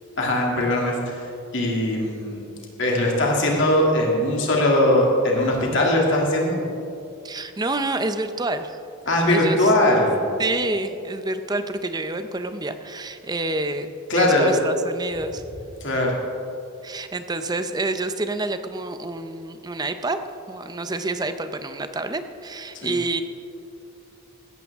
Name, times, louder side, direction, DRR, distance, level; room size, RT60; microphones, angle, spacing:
voice 1, 0.2-1.3 1.5-2.4 2.8-6.6 9.1-10.2 14.1-14.5 15.8-16.2 22.8-22.9, left 1 dB, 55° left, -1 dB, 2.5 m, -20 dB
voice 2, 7.2-8.8 9.3-9.7 10.4-15.4 16.8-20.2 20.5-23.2, right 2 dB, 20° right, 9 dB, 0.5 m, -28 dB
16.5 x 13.5 x 3.6 m, 2.8 s
head